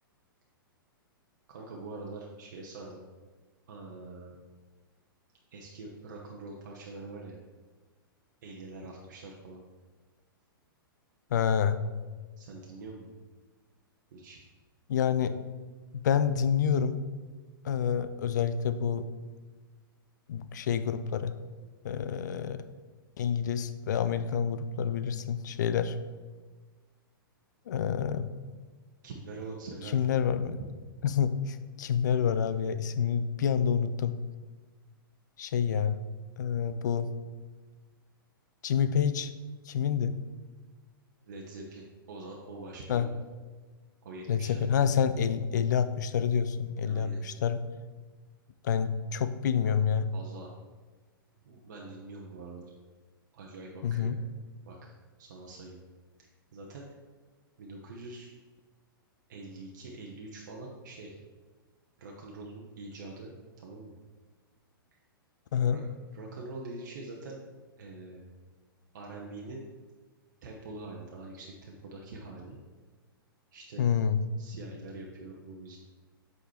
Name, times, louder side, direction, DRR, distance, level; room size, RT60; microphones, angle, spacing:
voice 1, 1.5-3.0 3.7-4.4 5.5-7.4 8.4-9.6 12.4-13.1 14.1-14.4 29.0-30.0 41.2-43.2 44.0-44.6 46.8-47.2 49.6-49.7 50.1-50.5 51.4-52.7 53.3-54.2 54.7-54.9 55.2-55.8 56.5-56.9 57.6-58.3 59.3-61.2 62.0-63.3 63.6-63.9 65.7-65.8 66.1-67.4 67.8-68.2 68.9-69.6 70.4-72.6 73.5-73.9 74.4-75.8, right 2 dB, 50° right, -1 dB, 0.9 m, -44 dB
voice 2, 11.3-11.8 14.9-15.4 15.9-17.0 17.6-19.1 20.3-21.3 21.8-22.6 23.2-26.0 27.7-28.3 29.9-30.6 31.0-34.2 35.4-36.0 36.4-37.1 38.6-39.3 39.7-40.2 42.9-43.1 44.3-47.6 48.6-50.1 53.8-54.2 65.5-65.8 73.8-74.2, left 7 dB, 50° left, 13 dB, 0.4 m, -28 dB
8.0 x 5.0 x 3.1 m, 1.3 s
figure-of-eight pair, 105°, 12 cm